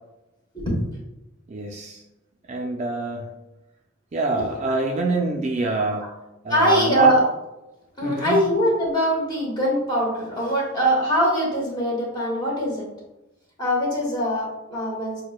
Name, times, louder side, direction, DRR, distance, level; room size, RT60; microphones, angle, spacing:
voice 1, 1.5-2.0 2.5-3.3 4.1-6.1 6.4-7.1 8.0-8.4, right 2 dB, 35° right, 1 dB, 0.4 m, -26 dB
voice 2, 6.5-7.2 8.0-12.8 13.6-15.2, equal, 20° left, -4 dB, 1.2 m, -22 dB
6.4 x 2.2 x 2.3 m, 0.96 s
head